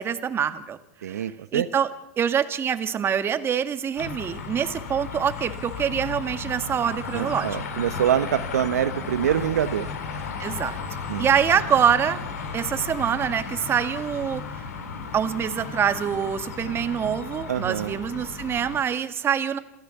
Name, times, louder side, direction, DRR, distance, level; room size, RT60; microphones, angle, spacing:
voice 1, 0.0-1.9 2.2-7.5 10.4-10.8 11.2-12.2 12.5-14.4 15.1-19.6, right 8 dB, 30° right, 9 dB, 1.9 m, -25 dB
voice 2, 1.0-1.7 7.1-9.9 11.1-11.3 17.5-18.0, right 10 dB, 90° right, 11 dB, 1.0 m, -25 dB
sound 1, 4.0-18.8, left 5 dB, 85° left, 3.6 m, -34 dB
28.0 x 13.0 x 7.2 m, 0.84 s
hypercardioid pair, 105°, 8 cm